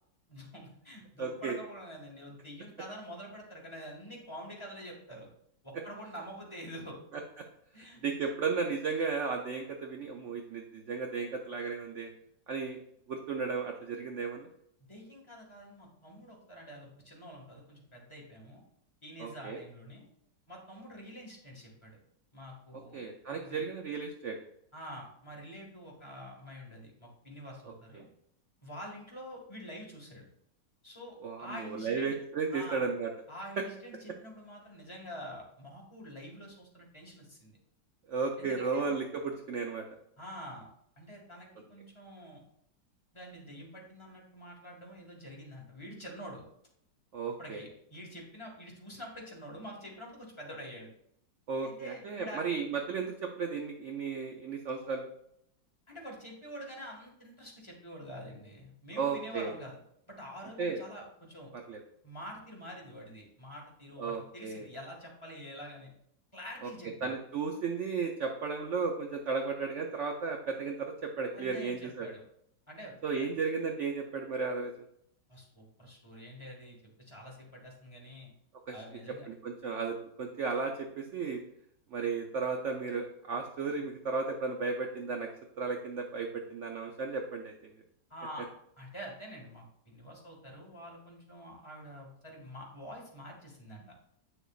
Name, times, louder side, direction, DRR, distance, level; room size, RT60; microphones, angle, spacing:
voice 1, 0.3-5.3 5.6-7.0 7.7-8.0 14.9-18.6 19.0-20.0 20.5-22.0 22.3-23.0 23.3-23.6 24.7-28.1 28.6-30.3 30.8-32.1 32.5-32.8 33.3-37.6 38.4-38.9 40.2-40.7 41.0-42.4 43.1-46.4 47.4-50.9 51.6-52.4 55.9-59.8 60.1-61.5 62.0-65.9 66.3-67.1 71.3-72.2 72.7-73.3 75.3-78.3 78.7-79.3 88.1-88.5 88.8-93.8, equal, 15° left, -2 dB, 1.7 m, -47 dB
voice 2, 1.2-1.6 8.0-12.1 12.5-12.8 13.1-14.5 19.2-19.6 22.9-24.4 27.9-28.1 31.2-33.1 38.1-39.8 47.1-47.6 51.5-55.1 59.0-59.5 60.6-60.8 61.5-61.8 64.0-64.7 66.6-66.7 67.0-72.1 73.0-74.7 78.7-78.8 79.3-81.4 81.9-85.3 85.6-87.5, right 5 dB, 60° right, 4 dB, 0.8 m, -34 dB
9.0 x 6.6 x 2.4 m, 0.72 s
omnidirectional pair, 1.9 m